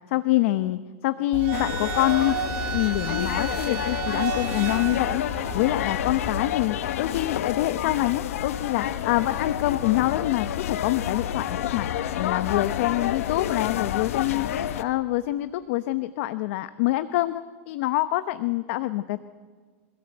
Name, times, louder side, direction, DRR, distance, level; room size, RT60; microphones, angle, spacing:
voice 1, 0.1-2.4 2.7-19.2, left 16 dB, 60° left, 12 dB, 0.9 m, -26 dB
sound 1, 1.3-6.4, right 8 dB, 60° right, 3.2 m, -32 dB
sound 2, 1.5-14.8, left 10 dB, 80° left, 1.3 m, -29 dB
25.0 x 17.0 x 7.9 m, 1.5 s
supercardioid pair, 145°, 8 cm